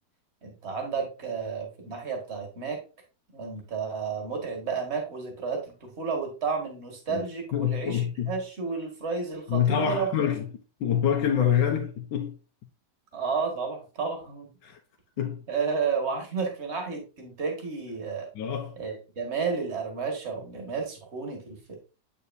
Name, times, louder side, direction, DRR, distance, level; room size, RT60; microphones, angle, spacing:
voice 1, 0.4-2.8 3.3-10.1 13.1-14.5 15.2-18.3 18.8-21.7, right 5 dB, 35° right, 2.1 m, -32 dB
voice 2, 7.5-8.4 9.5-10.5 10.8-12.4 14.6-14.8 15.2-15.4 18.3-18.8, left 8 dB, 75° left, 1.4 m, -26 dB
8.2 x 5.9 x 2.7 m
omnidirectional pair, 2.0 m